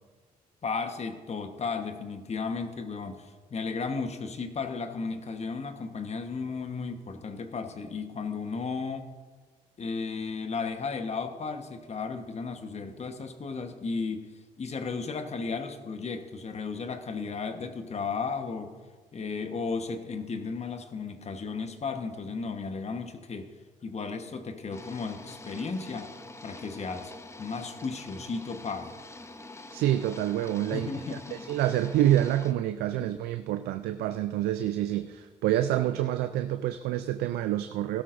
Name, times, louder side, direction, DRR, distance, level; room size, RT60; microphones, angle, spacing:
voice 1, 0.6-9.1 9.8-14.3 14.6-18.7 19.1-23.5 23.8-26.1 26.4-27.1 27.4-28.9 30.7-31.4 32.9-33.1, left 4 dB, 40° left, 8 dB, 1.2 m, -34 dB
sound 1, 24.7-32.5, left 2 dB, 15° left, 0.8 m, -46 dB
voice 2, 29.7-38.0, right 12 dB, 75° right, 10 dB, 0.4 m, -27 dB
16.0 x 12.5 x 2.6 m, 1.4 s
hypercardioid pair, 55°, 17 cm